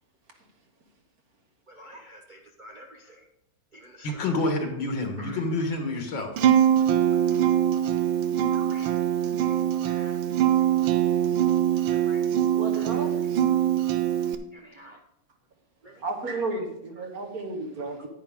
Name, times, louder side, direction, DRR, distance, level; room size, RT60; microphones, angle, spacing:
voice 1, 1.7-3.3 3.7-4.2 5.2-5.4 8.6-9.0 9.4-9.6 9.8-10.2 11.9-12.2 12.7-13.1 14.5-15.0 15.8-16.0 18.0-18.1, equal, 65° right, 1 dB, 0.4 m, -49 dB
voice 2, 4.0-6.3, left 2 dB, 70° left, 4 dB, 2.2 m, -28 dB
Acoustic guitar, 6.4-14.3, right 10 dB, 90° right, 1.5 m, -23 dB
voice 3, 12.5-13.2 16.0-18.0, right 3 dB, 50° right, 3 dB, 1.7 m, -33 dB
9.8 x 9.7 x 3.6 m, 0.81 s
omnidirectional pair, 2.1 m